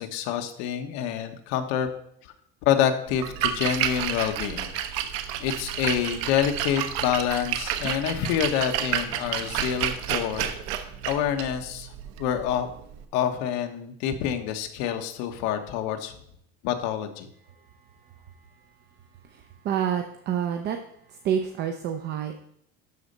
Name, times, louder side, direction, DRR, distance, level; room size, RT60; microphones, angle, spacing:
voice 1, 0.0-1.9 2.2-2.3 2.6-4.7 5.4-10.5 10.8-11.9 12.2-12.7 13.1-16.1 16.6-17.3, left 9 dB, 65° left, 6 dB, 1.3 m, -27 dB
Splash splatter, 3.1-13.0, right 10 dB, 65° right, 1.1 m, -30 dB
voice 2, 19.2-20.8 21.1-22.3, right 9 dB, 35° right, 6 dB, 0.7 m, -28 dB
12.0 x 4.1 x 6.7 m, 0.72 s
cardioid pair, 180°, 30 cm